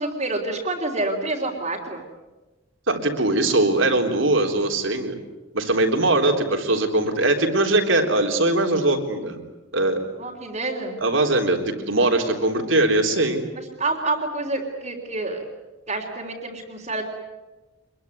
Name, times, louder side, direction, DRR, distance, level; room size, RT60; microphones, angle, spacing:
voice 1, 0.0-2.0 10.2-11.0 13.5-15.4 15.9-17.0, right 2 dB, 35° right, -4 dB, 3.4 m, -28 dB
voice 2, 2.9-5.2 5.5-9.4 9.7-10.0 11.0-13.4, right 2 dB, 65° right, 4 dB, 3.8 m, -21 dB
26.0 x 22.5 x 9.6 m, 1.1 s
head